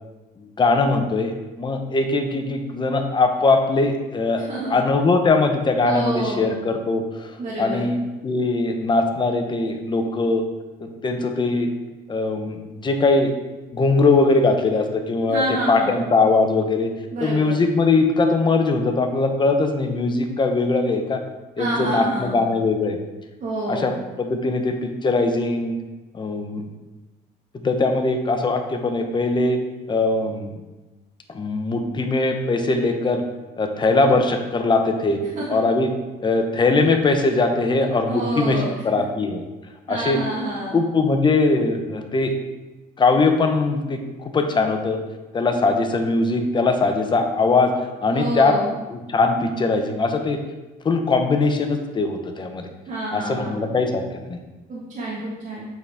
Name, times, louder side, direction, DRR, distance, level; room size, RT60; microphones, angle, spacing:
voice 1, 0.4-8.0 8.2-10.5 10.8-11.7 12.1-13.3 13.7-16.9 17.2-21.2 21.6-23.0 23.7-25.8 26.1-26.7 27.5-29.6 29.9-30.5 31.3-33.2 33.6-35.2 35.5-35.9 36.2-39.4 39.9-40.2 40.7-42.3 43.0-45.0 45.3-48.6 48.9-50.4 50.8-52.7 53.1-54.4, left 3 dB, 25° left, 5 dB, 0.8 m, -21 dB
voice 2, 4.5-4.8 5.8-6.5 7.4-7.9 15.3-16.0 17.1-17.5 21.6-22.4 23.4-23.9 35.3-35.4 38.1-38.7 39.9-40.8 48.1-48.7 52.9-53.7 54.7-55.7, right 1 dB, 50° right, -7 dB, 1.6 m, -27 dB
8.2 x 4.1 x 3.5 m, 1.1 s
cardioid pair, 110°, 17 cm